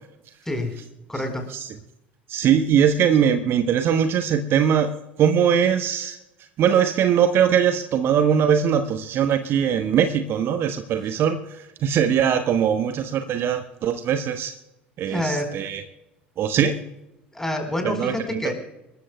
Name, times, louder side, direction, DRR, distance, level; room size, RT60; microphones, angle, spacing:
voice 1, 0.4-0.8 1.1-1.4 15.1-15.5 17.3-18.5, left 1 dB, 10° left, 4 dB, 4.4 m, -27 dB
voice 2, 2.3-4.9 5.2-6.2 6.6-14.6 15.0-15.8 16.4-16.8 18.0-18.5, right 8 dB, 45° right, 9 dB, 1.0 m, -21 dB
26.5 x 14.0 x 2.3 m, 0.91 s
figure-of-eight pair, 70°, 6 cm